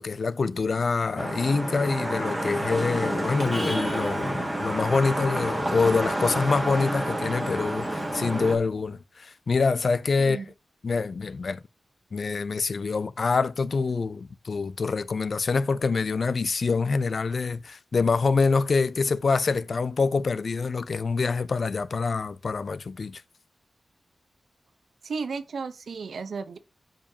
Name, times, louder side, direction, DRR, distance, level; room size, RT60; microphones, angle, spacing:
voice 1, 0.0-10.4 10.8-11.6 12.1-23.2, left 4 dB, 55° left, 0.5 m, -26 dB
Vehicle horn car horn honking / Traffic noise roadway noise, 1.2-8.6, right 1 dB, 10° right, 2.0 m, -29 dB
voice 2, 25.0-26.6, right 5 dB, 80° right, 0.8 m, -34 dB
12.0 x 5.1 x 2.8 m
wide cardioid pair, 150°, 0 cm